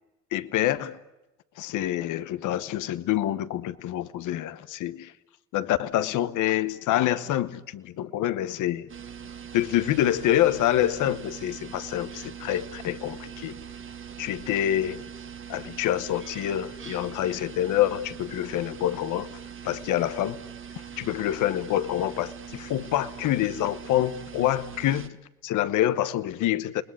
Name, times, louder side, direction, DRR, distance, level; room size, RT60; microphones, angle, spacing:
voice 1, 0.3-1.0 1.6-5.1 5.5-8.9 9.5-13.6 14.2-15.0 15.5-19.3 19.6-20.4 21.0-25.2 25.4-26.8, left 12 dB, 90° left, 1.0 m, -26 dB
sound 1, 8.9-25.1, right 8 dB, 40° right, 1.6 m, -42 dB
28.5 x 20.5 x 9.9 m
cardioid pair, 90°, 30 cm